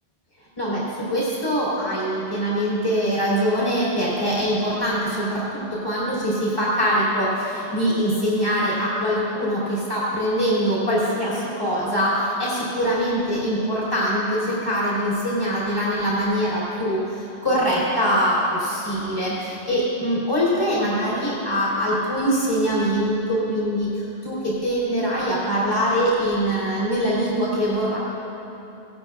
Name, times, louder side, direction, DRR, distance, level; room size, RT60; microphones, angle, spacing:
voice 1, 0.6-28.0, equal, 25° left, -9 dB, 3.0 m, -23 dB
18.0 x 12.0 x 2.4 m, 3.0 s
omnidirectional pair, 1.3 m